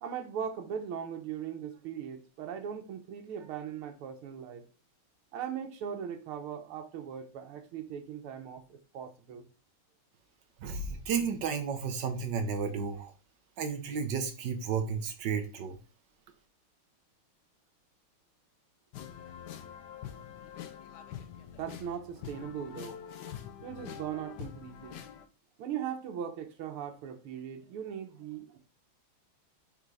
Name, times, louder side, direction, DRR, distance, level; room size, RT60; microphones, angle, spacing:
voice 1, 0.0-4.7 5.3-9.4 21.6-23.0 23.6-25.0 25.6-28.6, right 8 dB, 90° right, 1.9 m, -39 dB
voice 2, 10.6-13.1 13.6-15.8, right 6 dB, 60° right, 1.4 m, -32 dB
sound 1, 18.9-25.3, left 9 dB, 65° left, 1.1 m, -45 dB
5.4 x 4.0 x 4.7 m
omnidirectional pair, 2.3 m